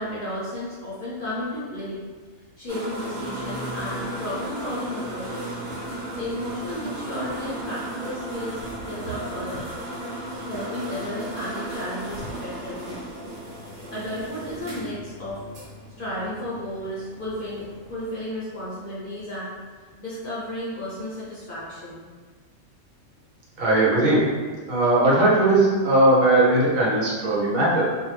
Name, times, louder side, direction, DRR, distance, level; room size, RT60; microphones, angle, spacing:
voice 1, 0.0-2.0 2.6-5.5 6.2-8.6 8.9-9.7 10.5-13.0 13.9-15.4 16.0-19.6 20.0-22.0, left 1 dB, 55° left, -8 dB, 0.6 m, -33 dB
sound 1, 2.7-18.2, right 1 dB, 50° right, 1.0 m, -35 dB
voice 2, 23.6-24.2 24.7-27.8, right 2 dB, 80° right, -5 dB, 1.2 m, -19 dB
2.6 x 2.0 x 3.1 m, 1.5 s
omnidirectional pair, 1.4 m